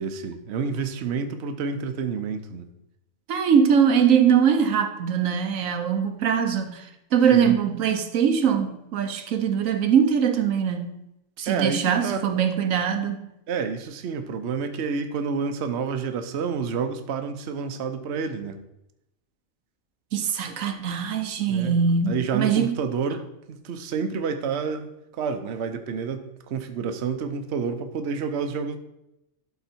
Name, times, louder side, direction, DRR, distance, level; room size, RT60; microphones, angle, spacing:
voice 1, 0.0-2.7 7.3-7.5 11.5-12.2 13.5-18.6 21.5-21.8 22.1-28.8, right 5 dB, 60° right, 8 dB, 1.0 m, -29 dB
voice 2, 3.3-10.9 11.4-13.2 20.1-22.8, right 7 dB, 80° right, 7 dB, 1.2 m, -22 dB
12.0 x 4.1 x 4.4 m, 0.84 s
omnidirectional pair, 1.4 m